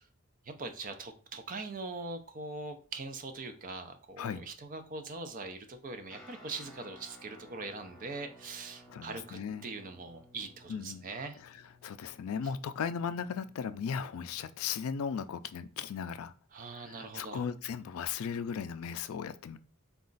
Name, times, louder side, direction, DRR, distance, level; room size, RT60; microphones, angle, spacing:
voice 1, 0.5-11.4 16.5-17.4, right 3 dB, 40° right, 0.5 m, -42 dB
Guitar, 6.1-15.5, equal, ahead, 0.8 m, -58 dB
voice 2, 8.9-9.7 10.7-11.0 11.4-11.5 11.8-16.3 16.7-19.6, left 7 dB, 70° left, 0.3 m, -37 dB
4.1 x 2.3 x 3.8 m
head